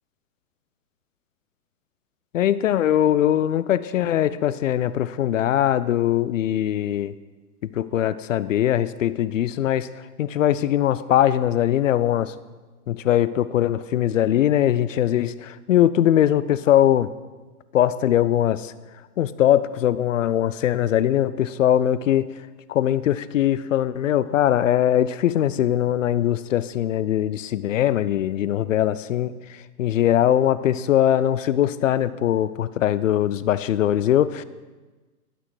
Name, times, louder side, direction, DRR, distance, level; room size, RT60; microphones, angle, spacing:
voice 1, 2.3-7.1 7.6-9.9 10.2-12.3 12.9-17.1 17.7-18.7 19.2-22.3 22.7-34.4, left 11 dB, 55° left, 16 dB, 0.5 m, -21 dB
11.5 x 6.2 x 4.8 m, 1.2 s
hypercardioid pair, 145°, 47 cm